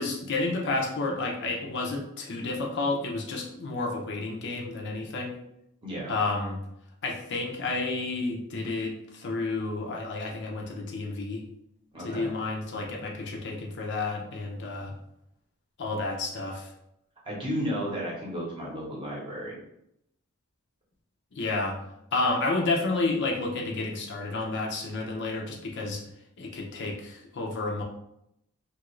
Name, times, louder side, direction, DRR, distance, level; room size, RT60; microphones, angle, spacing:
voice 1, 0.0-5.4 6.1-6.6 7.0-11.4 12.0-14.9 15.8-16.7 21.3-21.8 22.1-26.0 26.4-27.8, left 3 dB, 50° left, 0 dB, 0.5 m, -30 dB
voice 2, 5.8-6.1 11.9-12.3 17.2-19.6, equal, 25° right, -4 dB, 0.9 m, -33 dB
2.8 x 2.4 x 3.0 m, 0.78 s
head